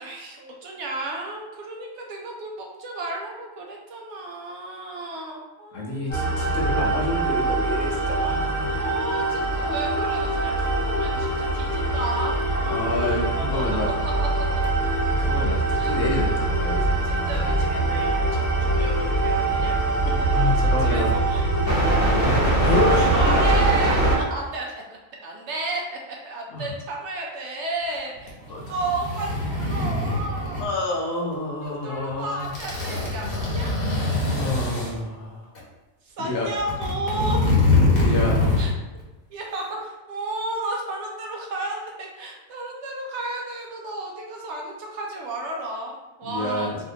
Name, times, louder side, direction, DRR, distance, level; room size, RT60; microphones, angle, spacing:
voice 1, 0.0-6.4 8.6-13.0 13.4-13.6 14.0-14.4 15.7-15.9 17.0-19.8 20.8-21.4 21.7-21.8 22.9-24.7 25.2-26.0 26.2-30.7 31.6-33.7 36.0-37.4 38.6-38.7 39.3-46.7, right 2 dB, 65° right, 0 dB, 0.8 m, -33 dB
voice 2, 5.7-8.8 12.7-13.9 15.2-16.9 20.3-21.2 22.1-23.4 26.5-26.7 28.5-28.6 30.6-32.5 34.2-35.5 36.2-36.5 38.0-38.5 46.2-46.8, left 2 dB, 70° left, -2 dB, 1.1 m, -28 dB
sound 1, 6.1-24.1, right 2 dB, 15° left, 1.1 m, -23 dB
sound 2, 28.2-30.6 32.0-32.1 32.4-34.9 35.5-35.6 36.4-38.7 39.0-39.1, left 2 dB, 50° left, 1.0 m, -23 dB
3.5 x 2.5 x 2.7 m, 1.2 s
omnidirectional pair, 1.4 m